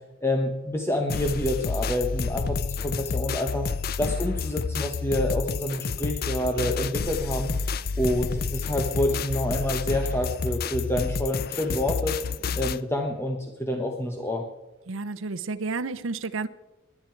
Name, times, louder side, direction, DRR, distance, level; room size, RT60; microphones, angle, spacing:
voice 1, 0.2-3.7 4.0-7.5 8.0-12.2 12.5-14.4, left 1 dB, 10° left, 2 dB, 1.1 m, -28 dB
sound 1, 1.1-12.8, left 5 dB, 45° left, 0.4 m, -29 dB
voice 2, 14.9-16.5, right 3 dB, 70° right, 11 dB, 0.7 m, -31 dB
21.5 x 9.9 x 4.6 m, 1.0 s
head